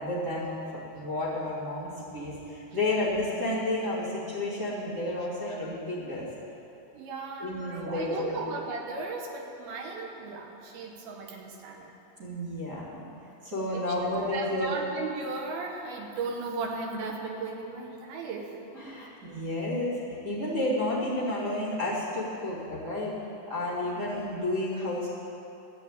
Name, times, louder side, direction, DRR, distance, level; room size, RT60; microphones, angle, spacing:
voice 1, 0.0-6.3 7.4-8.4 12.2-13.1 13.4-14.8 18.7-23.1 23.4-25.1, left 1 dB, 25° right, -8 dB, 3.0 m, -31 dB
voice 2, 6.9-11.9 13.7-13.9 14.3-18.5 23.8-24.1, right 4 dB, 70° right, 1 dB, 2.8 m, -36 dB
14.0 x 6.5 x 8.9 m, 2.9 s
omnidirectional pair, 4.8 m